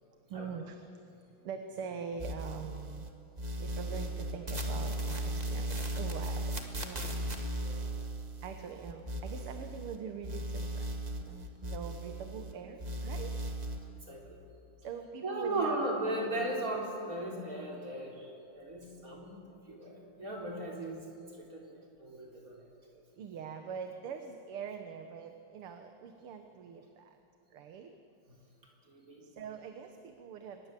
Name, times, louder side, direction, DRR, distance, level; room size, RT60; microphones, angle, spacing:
voice 1, 0.3-3.1 3.6-7.0 7.4-7.6 8.4-10.9 11.2-13.3 14.8-15.9 22.9-27.2 27.5-27.9 29.2-30.7, right 6 dB, 85° right, 6 dB, 2.1 m, -43 dB
sound 1, 2.2-3.1 3.4-10.0 10.2-12.5 12.8-13.8, right 1 dB, 20° right, 1.7 m, -37 dB
voice 2, 7.5-7.9 13.9-14.4 15.2-19.3 19.7-21.0 21.3-21.6 22.0-22.6 28.9-29.3, right 1 dB, 40° right, -2 dB, 4.2 m, -37 dB
24.0 x 21.0 x 7.5 m, 2.7 s
omnidirectional pair, 2.4 m